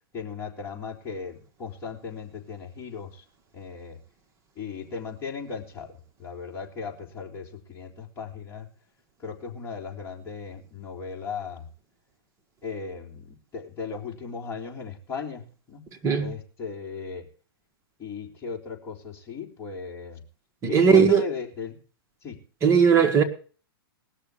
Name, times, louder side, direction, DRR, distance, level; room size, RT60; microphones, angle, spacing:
voice 1, 0.1-3.2 3.5-4.0 4.6-8.7 9.2-11.7 12.6-15.9 16.2-17.3 18.0-20.2 20.7-21.8 22.2-22.4, left 5 dB, 20° left, 4.0 m, -37 dB
voice 2, 20.6-21.2 22.6-23.2, right 6 dB, 25° right, 1.7 m, -18 dB
19.0 x 6.7 x 8.7 m
hypercardioid pair, 140°, 13 cm